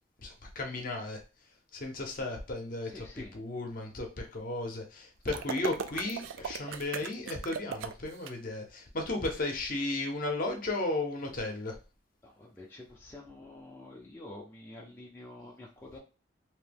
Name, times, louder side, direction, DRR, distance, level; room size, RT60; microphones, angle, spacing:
voice 1, 0.2-1.2 1.7-3.1 3.3-11.8, left 2 dB, 45° left, 2 dB, 0.7 m, -35 dB
voice 2, 2.8-3.3 12.2-16.0, left 2 dB, 10° left, -3 dB, 0.4 m, -48 dB
sound 1, 5.3-8.3, right 7 dB, 75° right, 0.3 m, -38 dB
2.8 x 2.2 x 3.3 m, 0.32 s
head